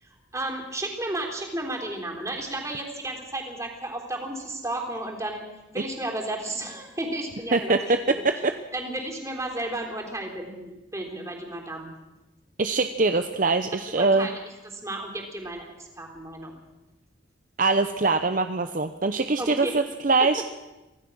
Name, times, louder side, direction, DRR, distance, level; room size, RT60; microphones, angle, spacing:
voice 1, 0.0-5.4 5.7-7.9 8.3-8.4 8.7-11.9 13.9-14.4 14.7-16.6 19.4-19.7 20.2-20.3, right 1 dB, 15° right, 2 dB, 3.6 m, -33 dB
voice 2, 12.6-14.3 17.6-20.4, right 3 dB, 45° right, 8 dB, 0.8 m, -23 dB
25.0 x 16.5 x 6.3 m, 1.0 s
head